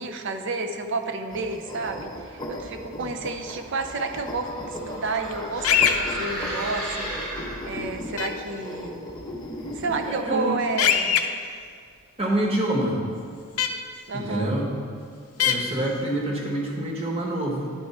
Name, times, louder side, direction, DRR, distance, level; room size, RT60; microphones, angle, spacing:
voice 1, 0.0-9.1 9.7-11.2 14.1-14.5, right 3 dB, 55° right, 6 dB, 0.5 m, -31 dB
sound 1, 1.3-10.2, equal, 20° left, 0.6 m, -37 dB
sound 2, 3.6-8.0, right 1 dB, 80° right, 1.5 m, -35 dB
sound 3, 5.6-6.0 8.2-8.3 10.8-11.2 13.6-13.7 15.4-15.5, left 8 dB, 75° left, 0.5 m, -20 dB
voice 2, 10.0-10.6 12.2-13.0 14.1-14.7 15.4-17.7, right 1 dB, 25° right, -2 dB, 1.2 m, -26 dB
10.5 x 4.4 x 4.3 m, 2.2 s
head